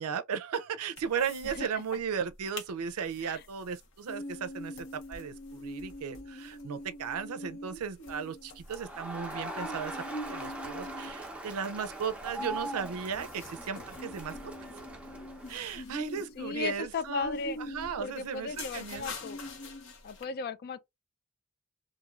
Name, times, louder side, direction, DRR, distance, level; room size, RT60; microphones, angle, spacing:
voice 1, 0.0-10.0 10.3-14.3 15.5-19.2, right 7 dB, 85° right, 0.4 m, -36 dB
sound 1, 1.0-1.6 1.9-2.0 2.3-2.7 3.1-20.2, left 1 dB, 60° left, 1.0 m, -44 dB
Crowd, 8.7-15.7, right 1 dB, 5° right, 0.6 m, -41 dB
voice 2, 16.4-17.6 18.0-19.4 20.0-20.8, left 4 dB, 45° left, 0.3 m, -36 dB
3.0 x 2.6 x 2.4 m
head